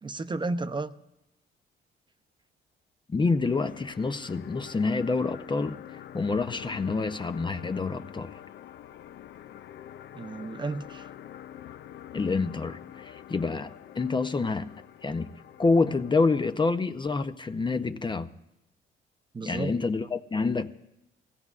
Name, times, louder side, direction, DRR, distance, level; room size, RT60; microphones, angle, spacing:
voice 1, 0.0-0.9 10.1-11.1 19.3-19.7, right 3 dB, 25° right, 0.6 m, -32 dB
voice 2, 3.1-5.8 6.1-8.3 12.1-14.7 15.0-15.3 15.6-18.3 19.4-20.7, left 4 dB, 25° left, 0.6 m, -27 dB
sound 1, 3.4-16.8, left 11 dB, 65° left, 0.5 m, -46 dB
22.5 x 16.5 x 2.4 m
cardioid pair, 90°, 20 cm